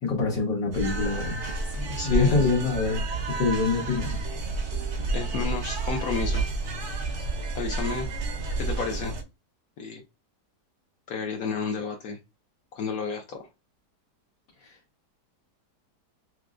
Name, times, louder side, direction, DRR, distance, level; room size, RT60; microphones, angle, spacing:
voice 1, 0.0-1.4 2.0-3.1 3.4-4.2 14.6-14.7, left 4 dB, 85° left, 1.8 m, -25 dB
sound 1, 0.7-9.2, right 3 dB, 55° right, 0.9 m, -30 dB
voice 2, 1.8-2.3 5.1-6.4 7.5-8.1 8.6-9.1 9.8-10.0 11.1-12.2 12.7-13.5, left 5 dB, 65° left, 1.0 m, -31 dB
5.8 x 2.0 x 2.4 m
omnidirectional pair, 1.8 m